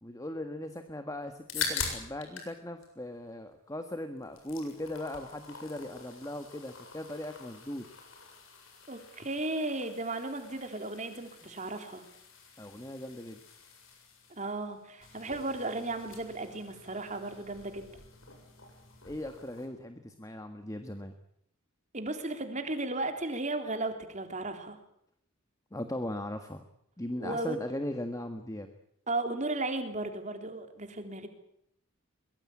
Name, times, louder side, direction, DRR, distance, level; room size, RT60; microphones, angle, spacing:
voice 1, 0.0-7.9 12.6-13.4 19.0-21.2 25.7-26.6 27.0-28.7, left 1 dB, 15° left, 7 dB, 1.6 m, -38 dB
sound 1, 1.2-2.5 2.8-3.8 4.2-19.7, left 5 dB, 65° left, 7.5 m, -44 dB
voice 2, 8.9-12.1 14.4-17.9 21.9-24.8 27.2-27.6 29.1-31.3, right 2 dB, 35° right, 6 dB, 3.5 m, -35 dB
23.5 x 22.0 x 8.7 m, 0.74 s
head